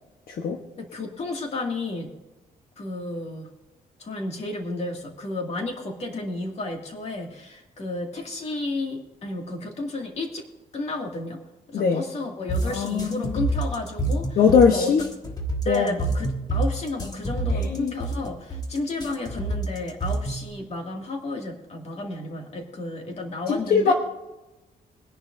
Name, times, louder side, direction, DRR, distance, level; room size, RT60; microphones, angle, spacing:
voice 1, 0.8-2.1 2.8-3.5 4.0-10.4 10.7-11.4 11.7-14.4 14.7-14.9 15.6-23.9, left 2 dB, 45° left, 2 dB, 2.3 m, -32 dB
sound 1, 12.5-20.5, right 2 dB, 25° left, 1.5 m, -27 dB
voice 2, 12.6-13.4 14.4-15.0 15.7-15.9 17.5-17.9 23.5-23.9, left 6 dB, 70° left, 3 dB, 1.1 m, -21 dB
22.0 x 11.0 x 2.7 m, 1.0 s
wide cardioid pair, 165°, 16 cm